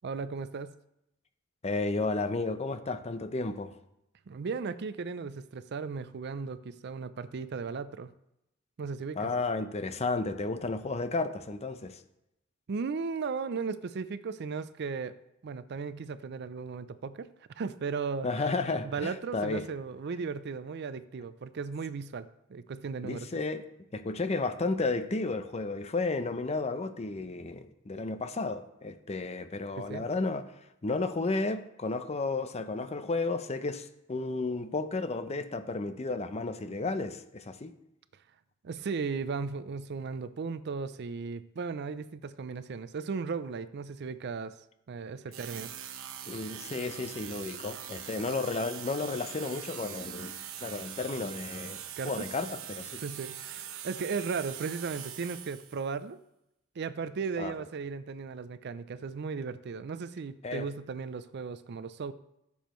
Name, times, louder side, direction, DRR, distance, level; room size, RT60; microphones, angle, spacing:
voice 1, 0.0-0.7 4.3-8.1 8.8-9.2 12.7-15.1 15.4-17.3 17.5-18.5 18.8-23.3 29.8-30.1 38.6-44.5 44.9-45.7 52.0-52.3 53.0-56.2 56.8-62.1, right 5 dB, 55° right, 14 dB, 0.4 m, -36 dB
voice 2, 1.6-3.7 9.2-12.0 18.2-19.6 23.0-23.6 23.9-30.4 30.8-37.7 46.3-53.0 57.4-57.5 60.4-60.7, left 3 dB, 30° left, 10 dB, 0.6 m, -33 dB
sound 1, 45.3-55.9, right 9 dB, 80° right, 0.9 m, -42 dB
14.5 x 7.1 x 3.1 m, 0.85 s
head